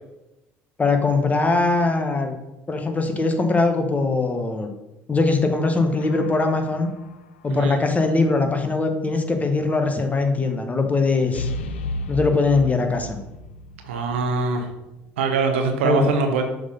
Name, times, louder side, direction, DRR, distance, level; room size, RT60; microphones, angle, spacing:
voice 1, 0.8-2.4 2.7-4.7 5.1-6.9 7.4-11.5 12.1-13.2 15.8-16.1, left 3 dB, 25° left, 5 dB, 1.3 m, -21 dB
sound 1, 6.0-6.9 11.3-14.3 14.6-14.7, left 2 dB, 85° left, 0.4 m, -33 dB
voice 2, 13.8-14.7 15.2-16.4, right 4 dB, 85° right, 5 dB, 0.9 m, -23 dB
6.9 x 3.9 x 5.5 m, 0.97 s
hypercardioid pair, 65°, 6 cm